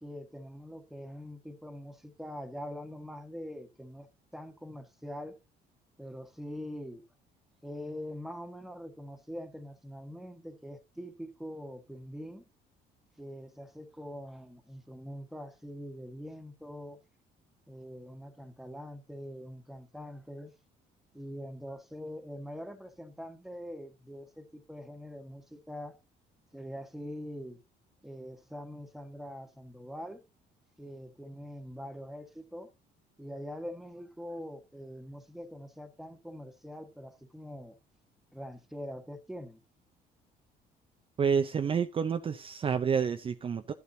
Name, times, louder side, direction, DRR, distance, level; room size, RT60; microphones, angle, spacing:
voice 1, 0.0-4.1 4.3-5.4 6.0-7.0 7.6-12.5 13.2-17.0 17.7-20.5 21.1-26.0 26.5-27.6 28.0-30.2 30.8-32.7 33.2-37.8 38.3-39.6, equal, ahead, 1.5 m, -43 dB
voice 2, 41.2-43.7, right 6 dB, 30° right, 0.6 m, -29 dB
12.5 x 8.3 x 2.7 m
cardioid pair, 110°, 17 cm